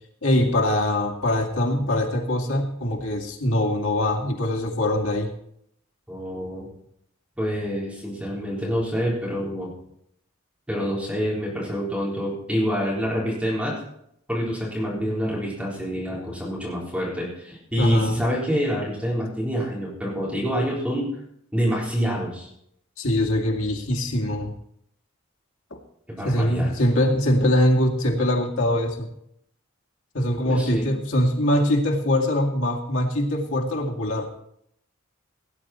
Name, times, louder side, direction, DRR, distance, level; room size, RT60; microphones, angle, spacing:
voice 1, 0.2-5.3 17.8-18.2 23.0-24.5 26.2-29.1 30.1-34.3, left 1 dB, 90° left, 1 dB, 2.3 m, -22 dB
voice 2, 6.1-6.7 7.4-9.7 10.7-13.7 14.3-21.1 21.5-22.5 26.1-26.7 30.5-30.9, equal, 5° right, -5 dB, 3.9 m, -27 dB
17.5 x 9.5 x 4.4 m, 0.74 s
head